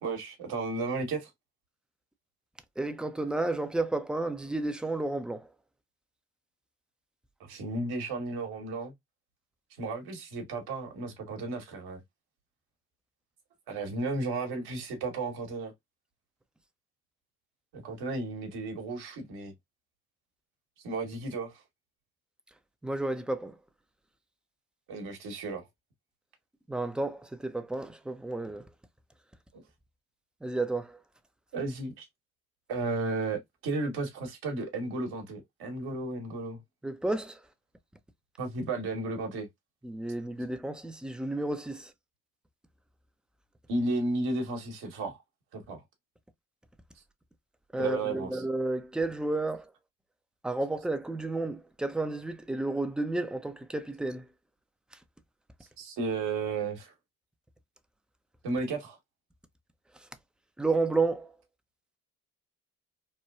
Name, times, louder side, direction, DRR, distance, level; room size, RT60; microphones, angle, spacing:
voice 1, 0.0-1.3 7.4-8.9 9.8-12.0 13.7-15.7 17.7-19.5 20.8-21.6 24.9-25.6 29.5-29.6 31.5-32.1 32.7-36.6 38.4-39.5 43.7-45.2 45.5-45.8 47.8-48.4 55.8-56.9 58.4-59.0, right 3 dB, 65° right, 1.2 m, -33 dB
voice 2, 2.8-5.5 22.8-23.5 26.7-28.6 30.4-31.0 36.8-37.4 39.8-41.9 47.7-49.7 50.4-54.3 60.6-61.3, right 2 dB, ahead, 0.4 m, -31 dB
3.1 x 2.2 x 2.2 m
hypercardioid pair, 50°, 41 cm